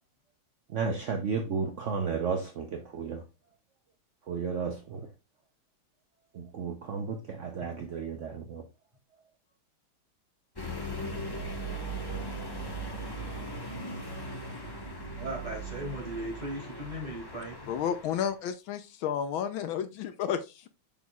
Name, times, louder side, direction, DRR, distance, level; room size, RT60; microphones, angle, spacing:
voice 1, 0.7-3.3 4.2-5.1 6.3-8.6, right 5 dB, 65° right, 0.7 m, -33 dB
sound 1, 10.6-18.3, right 1 dB, 15° left, 0.8 m, -38 dB
voice 2, 15.2-17.7, right 1 dB, 20° right, 3.6 m, -37 dB
voice 3, 17.7-20.7, left 8 dB, 75° left, 1.4 m, -32 dB
7.0 x 6.3 x 2.3 m
omnidirectional pair, 2.3 m